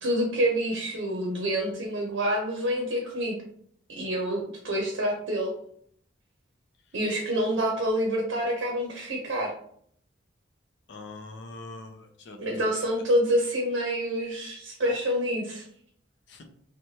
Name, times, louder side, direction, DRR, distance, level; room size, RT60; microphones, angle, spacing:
voice 1, 0.0-3.4 3.9-5.5 6.9-9.5 12.4-15.7, equal, 70° right, 0 dB, 0.6 m, -27 dB
voice 2, 10.9-12.8 16.3-16.4, left 2 dB, 60° left, 6 dB, 0.5 m, -43 dB
3.1 x 2.1 x 2.7 m, 0.65 s
head